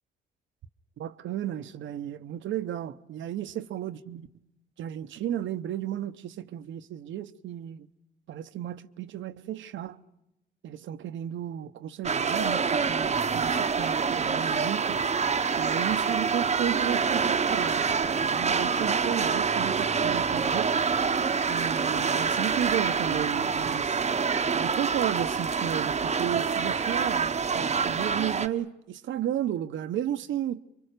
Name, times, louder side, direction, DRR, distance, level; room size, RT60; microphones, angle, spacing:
voice 1, 1.0-4.3 4.8-7.9 8.3-10.0 10.6-15.0 15.6-20.7 21.5-24.0 24.5-30.6, right 11 dB, 75° right, 0.9 m, -33 dB
sound 1, 12.0-28.5, right 5 dB, 35° right, 0.9 m, -26 dB
27.5 x 24.0 x 6.7 m
cardioid pair, 90°, 20 cm